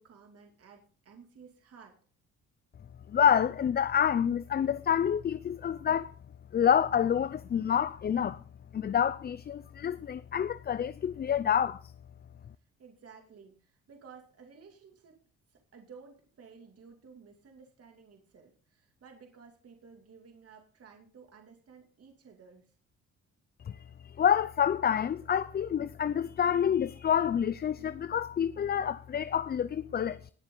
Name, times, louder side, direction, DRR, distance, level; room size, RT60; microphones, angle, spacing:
voice 1, 0.0-1.9 12.8-15.2 15.5-22.7, right 5 dB, 50° right, 2.7 m, -54 dB
voice 2, 3.1-6.1 6.5-8.4 8.7-11.8 23.7-23.8 24.2-30.3, left 8 dB, 35° left, 0.4 m, -28 dB
19.0 x 7.0 x 3.9 m
cardioid pair, 90°, 30 cm